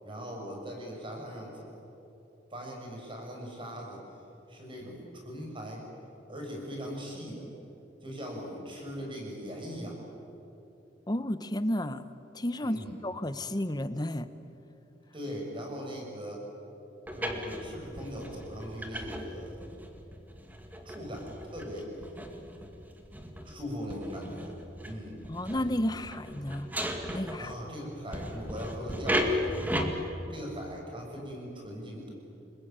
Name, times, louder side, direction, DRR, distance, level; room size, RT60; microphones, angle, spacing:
voice 1, 0.0-1.8 2.5-4.0 4.5-5.8 6.3-7.5 8.0-10.0 12.6-12.9 15.1-16.4 17.1-19.6 20.8-21.9 23.4-24.5 24.8-25.2 27.4-29.8 30.3-32.1, equal, 30° right, 0 dB, 6.3 m, -40 dB
voice 2, 11.1-12.1 12.3-14.3 25.3-26.7 27.1-27.5, left 1 dB, 20° left, 12 dB, 0.9 m, -32 dB
sound 1, 17.1-27.7 28.1-29.9, equal, 10° right, 2.0 m, -36 dB
29.0 x 21.0 x 9.0 m, 2.9 s
head